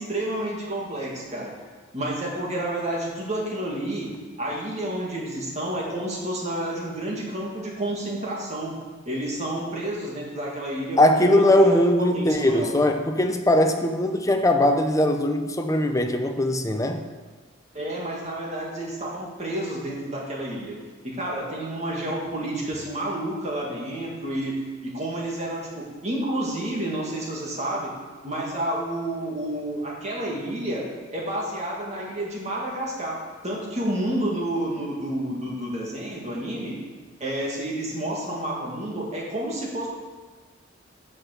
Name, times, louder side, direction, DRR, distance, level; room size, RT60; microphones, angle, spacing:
voice 1, 0.0-1.5 1.9-4.1 4.4-8.7 9.1-12.7 17.7-20.8 21.0-27.9 28.2-36.8 37.2-39.9, right 1 dB, 35° right, -3 dB, 2.1 m, -30 dB
voice 2, 11.0-17.0, left 1 dB, 15° left, 5 dB, 0.7 m, -20 dB
8.6 x 5.9 x 6.7 m, 1.4 s
head